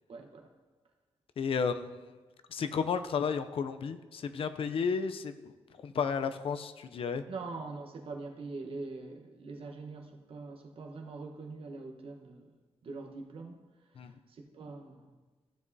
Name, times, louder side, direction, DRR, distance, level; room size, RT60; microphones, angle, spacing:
voice 1, 0.1-0.5 7.3-12.5 12.8-13.6 14.0-15.2, right 3 dB, 60° right, 3 dB, 1.1 m, -43 dB
voice 2, 1.4-2.1 2.5-5.5 5.8-7.2 14.0-14.1, left 6 dB, 60° left, 9 dB, 0.5 m, -32 dB
15.0 x 7.3 x 2.7 m, 1.3 s
wide cardioid pair, 125°, 11 cm